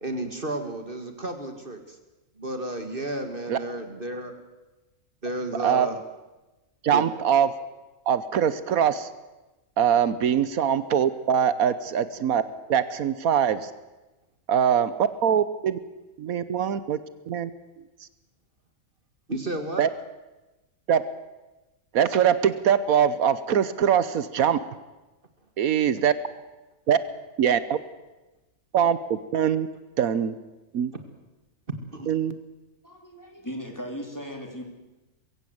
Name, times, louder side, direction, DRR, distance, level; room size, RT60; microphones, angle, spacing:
voice 1, 0.0-2.0 2.4-4.3 5.2-6.0 6.9-7.1 19.3-19.9 31.9-32.1, right 1 dB, 40° right, 7 dB, 2.0 m, -32 dB
voice 2, 6.8-7.5 8.1-9.1 9.8-12.4 12.7-13.7 14.5-15.8 16.2-17.0 17.3-17.5 19.8-19.9 20.9-21.0 21.9-24.6 25.6-26.1 26.9-27.0 27.4-27.8 28.7-29.7 30.0-30.3 30.7-30.9 32.1-32.4, right 8 dB, 80° right, 14 dB, 1.3 m, -22 dB
voice 3, 32.8-34.6, equal, 10° left, 2 dB, 3.2 m, -37 dB
22.0 x 16.0 x 8.0 m, 1.1 s
omnidirectional pair, 1.5 m